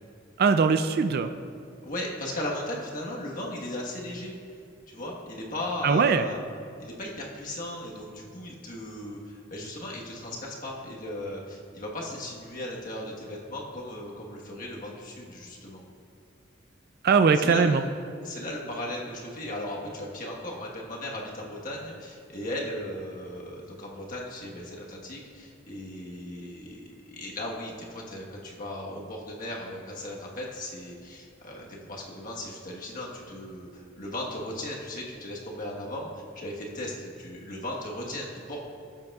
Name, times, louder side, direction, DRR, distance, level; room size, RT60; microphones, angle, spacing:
voice 1, 0.4-1.3 5.8-6.2 17.0-17.9, right 5 dB, 50° right, 9 dB, 0.3 m, -21 dB
voice 2, 1.8-4.3 4.9-6.4 6.8-15.8 17.3-17.8 18.2-38.6, left 1 dB, 45° left, -3 dB, 1.4 m, -37 dB
15.0 x 7.6 x 2.4 m, 2.4 s
head